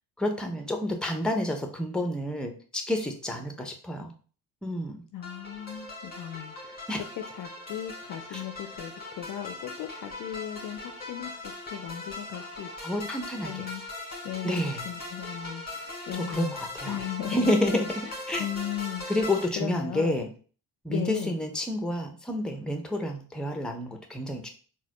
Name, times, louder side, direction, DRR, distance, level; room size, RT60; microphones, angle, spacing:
voice 1, 0.2-4.1 4.6-5.0 6.9-7.0 8.3-8.4 12.8-13.6 14.4-14.9 16.1-17.0 17.3-18.5 19.1-20.3 20.8-24.5, left 1 dB, ahead, 4 dB, 0.7 m, -29 dB
voice 2, 5.1-6.8 7.2-12.7 13.4-17.5 18.4-19.1 19.6-20.2 20.9-21.3, left 11 dB, 40° left, 6 dB, 0.5 m, -37 dB
sound 1, 5.2-19.4, left 2 dB, 20° left, 1.6 m, -40 dB
3.9 x 2.4 x 2.9 m, 0.40 s
hypercardioid pair, 55°, 50 cm